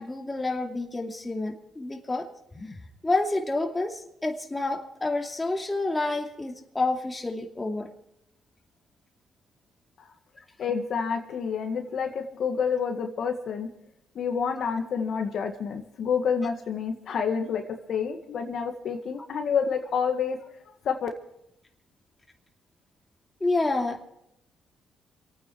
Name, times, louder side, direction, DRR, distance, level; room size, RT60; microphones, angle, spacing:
voice 1, 0.0-2.3 2.5-2.8 3.0-7.9 23.4-24.1, left 2 dB, 15° left, 2 dB, 2.6 m, -29 dB
voice 2, 10.6-13.7 14.2-17.6 17.9-20.4 20.8-21.1, left 6 dB, 65° left, 5 dB, 1.9 m, -28 dB
27.5 x 9.3 x 4.6 m, 0.79 s
cardioid pair, 90°, 0 cm